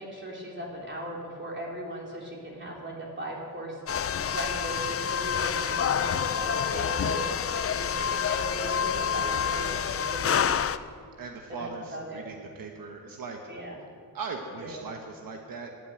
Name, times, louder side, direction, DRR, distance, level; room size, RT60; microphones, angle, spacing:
voice 1, 0.0-3.8 4.3-10.7 11.5-12.2 13.5-13.8 14.6-14.8, right 1 dB, 35° right, -3 dB, 3.8 m, -38 dB
sound 1, 3.9-10.8, left 7 dB, 45° left, 0.5 m, -28 dB
voice 2, 11.2-13.4 14.1-15.7, right 4 dB, 80° right, 3 dB, 1.2 m, -39 dB
11.0 x 9.3 x 8.8 m, 2.3 s
cardioid pair, 80°, 34 cm